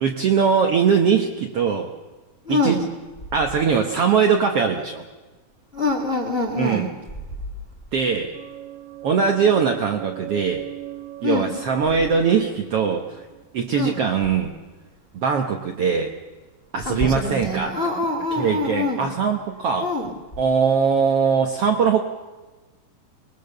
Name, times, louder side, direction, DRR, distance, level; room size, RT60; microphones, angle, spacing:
voice 1, 0.0-1.9 2.5-2.8 3.3-5.0 6.6-6.9 7.9-8.4 9.0-10.7 11.2-13.2 13.5-14.5 15.1-16.1 16.7-17.7 18.4-19.9 20.4-22.0, right 6 dB, 60° right, 3 dB, 1.6 m, -21 dB
voice 2, 2.4-2.8 5.7-7.0 11.2-11.6 13.7-14.0 16.8-19.1 19.8-20.1, left 3 dB, 20° left, 2 dB, 1.7 m, -25 dB
sound 1, 8.3-14.1, right 14 dB, 80° right, 2.5 m, -38 dB
23.5 x 21.0 x 6.7 m, 1.2 s
omnidirectional pair, 3.9 m